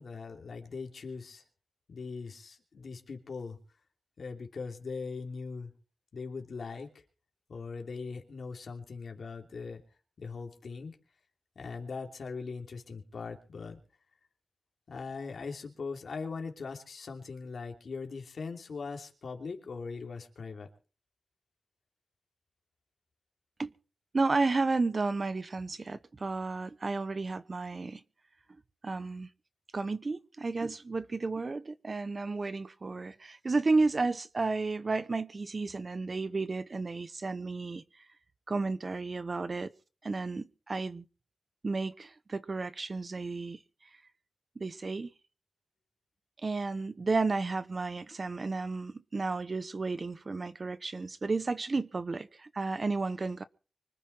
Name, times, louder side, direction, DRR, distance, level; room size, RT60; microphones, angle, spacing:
voice 1, 0.0-1.4 1.9-3.6 4.2-5.7 6.1-6.9 7.5-9.8 10.2-11.0 11.5-13.8 14.9-20.7, left 4 dB, 75° left, 2.9 m, -40 dB
voice 2, 24.1-28.0 28.8-29.3 29.7-37.8 38.5-39.7 40.0-41.0 41.6-43.6 44.6-45.1 46.4-53.4, right 3 dB, 40° right, 0.8 m, -32 dB
25.0 x 9.9 x 4.4 m
wide cardioid pair, 130°, 0 cm